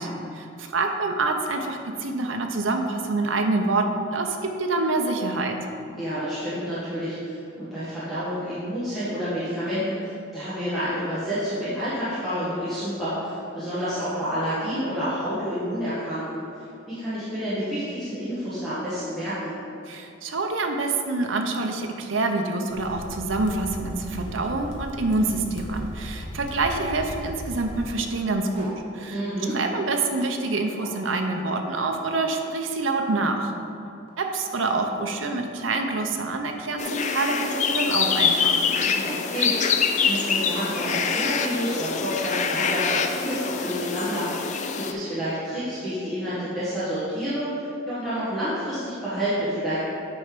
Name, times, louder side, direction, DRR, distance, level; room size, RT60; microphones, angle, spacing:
voice 1, 0.0-3.8 4.1-5.6 19.9-29.2 29.5-33.5 34.2-38.6, right 3 dB, 70° right, 4 dB, 0.7 m, -26 dB
voice 2, 5.9-16.4 16.9-19.5 29.1-29.6 38.8-39.6 40.0-49.8, equal, ahead, -15 dB, 1.7 m, -29 dB
sound 1, 22.7-27.9, equal, 65° left, 1.0 m, -37 dB
sound 2, 24.1-25.4 25.7-27.0 27.5-30.5 30.8-31.1 31.7-31.9 32.2-32.6 33.0-34.6 36.1-36.5 36.9-37.0 37.3-37.7, right 1 dB, 30° right, 1.2 m, -46 dB
sound 3, 36.8-44.9, left 6 dB, 35° left, 0.4 m, -25 dB
8.3 x 4.4 x 5.1 m, 2.6 s
head